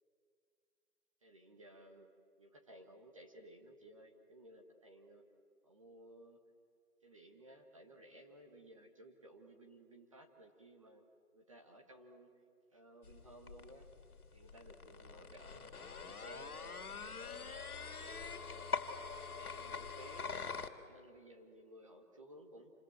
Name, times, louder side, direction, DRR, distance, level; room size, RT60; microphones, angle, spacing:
voice 1, 1.2-2.1 2.4-5.2 5.6-6.4 7.0-11.0 11.3-12.3 12.7-13.9 14.3-17.5 18.0-18.9 19.3-22.7, right 1 dB, 20° right, 2 dB, 1.4 m, -57 dB
sound 1, 13.0-20.7, left 4 dB, 65° left, 2.5 m, -44 dB
28.0 x 25.5 x 7.8 m, 2.3 s
hypercardioid pair, 175°, 46 cm